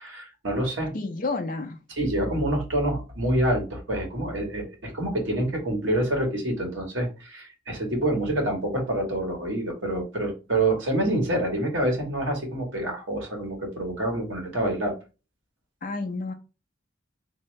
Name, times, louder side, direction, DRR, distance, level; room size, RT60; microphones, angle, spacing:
voice 1, 0.0-0.9 2.0-14.9, right 1 dB, 85° right, 1 dB, 1.4 m, -27 dB
voice 2, 0.9-1.8 15.8-16.3, left 3 dB, 45° left, 4 dB, 0.5 m, -30 dB
3.7 x 2.7 x 3.1 m, 0.30 s
head